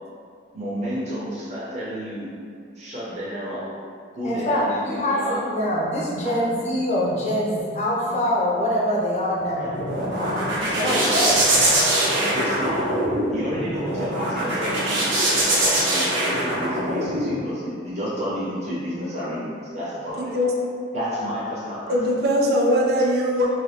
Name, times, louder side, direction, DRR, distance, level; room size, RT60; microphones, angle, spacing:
voice 1, 0.5-2.3 2.7-3.7 4.1-5.4 6.2-6.4 8.0-8.2 9.6-9.8 10.6-11.1 12.2-12.8 13.3-15.2 15.6-20.3 20.9-22.1, equal, 35° right, -8 dB, 0.8 m, -31 dB
voice 2, 4.2-9.7 10.8-11.4, equal, 35° left, -5 dB, 0.5 m, -24 dB
sound 1, 9.4-17.3, right 1 dB, 90° right, 0.7 m, -22 dB
voice 3, 20.2-20.5 21.9-23.5, equal, 55° right, -1 dB, 0.4 m, -21 dB
2.7 x 2.3 x 3.3 m, 2.3 s
head